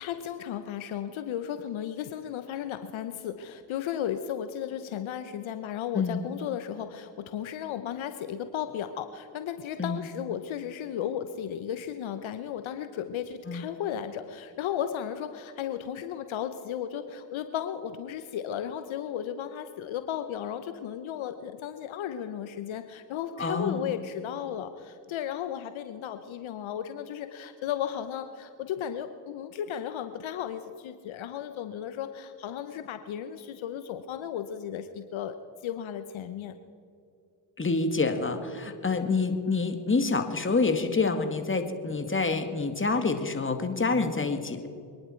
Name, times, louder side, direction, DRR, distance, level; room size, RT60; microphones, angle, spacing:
voice 1, 0.0-35.4 35.6-36.5, left 9 dB, 70° left, 10 dB, 1.0 m, -35 dB
voice 2, 23.4-23.9 37.6-44.7, left 4 dB, 25° left, 7 dB, 2.2 m, -27 dB
25.5 x 10.5 x 4.6 m, 2.5 s
supercardioid pair, 55°, 48 cm